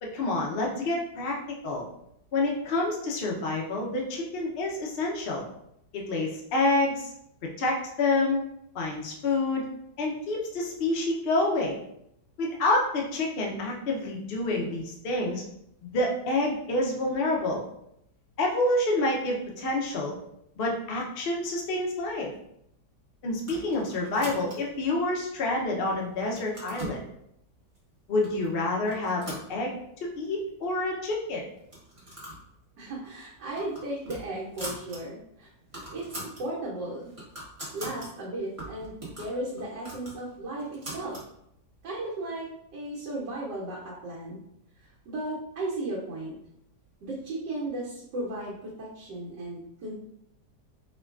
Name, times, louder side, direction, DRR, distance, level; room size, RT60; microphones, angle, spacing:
voice 1, 0.0-1.3 1.6-1.8 2.3-5.4 5.9-7.1 7.6-8.4 8.7-9.7 10.0-11.8 12.4-15.4 15.8-17.6 18.4-20.2 20.6-22.3 23.2-27.0 28.1-29.8 30.2-31.4, left 2 dB, 80° left, -1 dB, 0.5 m, -28 dB
sound 1, 23.4-24.8 25.4-25.9 26.2-27.0 27.8-27.9 28.2-28.5 28.8-30.1 30.4-30.5 30.7-30.8 31.6-32.5 32.8-33.0 33.3-35.0 35.3-35.4 35.6-36.4 36.9-38.1 38.6-41.3, right 1 dB, 25° right, 0.8 m, -42 dB
voice 2, 32.8-35.5 35.9-37.1 37.7-41.2 41.8-44.4 44.8-46.3 47.0-49.9, right 1 dB, 75° right, -5 dB, 1.4 m, -35 dB
4.7 x 2.2 x 2.3 m, 0.77 s
omnidirectional pair, 1.9 m